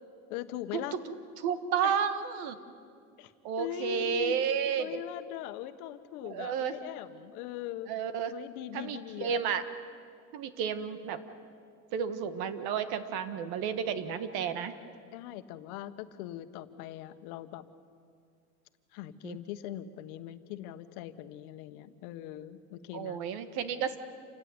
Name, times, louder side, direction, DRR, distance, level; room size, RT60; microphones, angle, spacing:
voice 1, 0.3-1.0 1.8-2.0 3.2-3.3 3.6-4.4 4.8-7.9 8.3-9.4 15.1-17.6 18.9-23.2, left 13 dB, 85° left, 10 dB, 1.3 m, -41 dB
voice 2, 1.4-2.6 3.4-5.0 6.2-6.8 7.9-8.3 8.7-9.6 10.3-11.2 11.9-14.7 19.2-19.4 22.9-24.0, right 7 dB, 60° right, 11 dB, 1.7 m, -32 dB
28.5 x 15.5 x 9.7 m, 2.3 s
cardioid pair, 150°, 43 cm